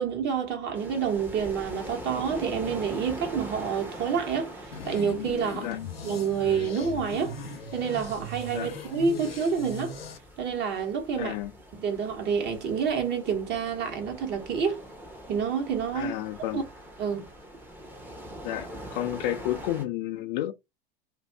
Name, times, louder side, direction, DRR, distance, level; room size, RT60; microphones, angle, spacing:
voice 1, 0.0-5.7 6.0-7.3 7.7-10.0 10.4-11.3 11.7-14.8 15.3-16.1 16.5-16.6 17.0-17.3, right 6 dB, 35° right, 1.2 m, -28 dB
sound 1, 0.7-19.8, right 1 dB, 5° right, 0.8 m, -43 dB
sound 2, 4.7-10.2, left 4 dB, 85° left, 0.7 m, -39 dB
voice 2, 11.2-11.5 15.9-16.6 18.4-20.5, left 13 dB, 50° left, 0.5 m, -31 dB
2.6 x 2.5 x 3.3 m
hypercardioid pair, 90°, 29 cm